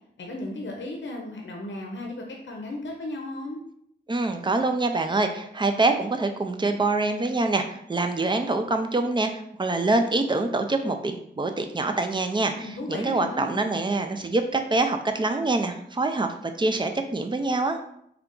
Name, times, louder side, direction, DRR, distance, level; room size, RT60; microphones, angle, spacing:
voice 1, 0.2-3.6 12.5-13.7, left 1 dB, 90° left, 0 dB, 0.6 m, -35 dB
voice 2, 4.1-9.3 9.6-17.8, right 2 dB, 25° right, 6 dB, 0.4 m, -25 dB
3.8 x 2.3 x 3.7 m, 0.72 s
wide cardioid pair, 100°, 19 cm